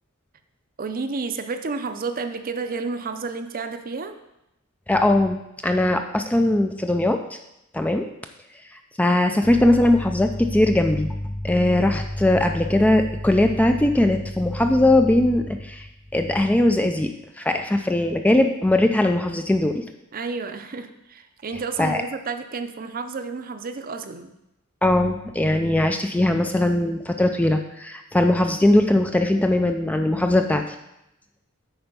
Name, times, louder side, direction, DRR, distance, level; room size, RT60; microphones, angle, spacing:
voice 1, 0.8-4.2 20.1-24.3, right 4 dB, 40° right, 8 dB, 0.6 m, -31 dB
voice 2, 4.9-7.2 7.7-8.1 9.0-15.9 16.1-17.1 17.4-19.8 21.8-22.0 24.8-30.6, left 1 dB, 5° left, 5 dB, 0.3 m, -20 dB
8.8 x 4.3 x 5.3 m, 0.87 s
head